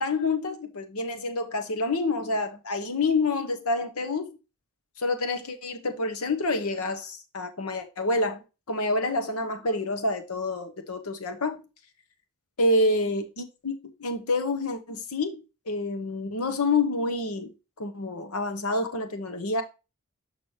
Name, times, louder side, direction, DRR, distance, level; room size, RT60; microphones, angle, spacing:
voice 1, 0.0-4.4 5.0-8.4 8.7-11.6 12.6-13.7 14.0-17.5 17.8-19.6, left 2 dB, 80° left, 1.0 m, -28 dB
6.4 x 5.9 x 2.8 m
head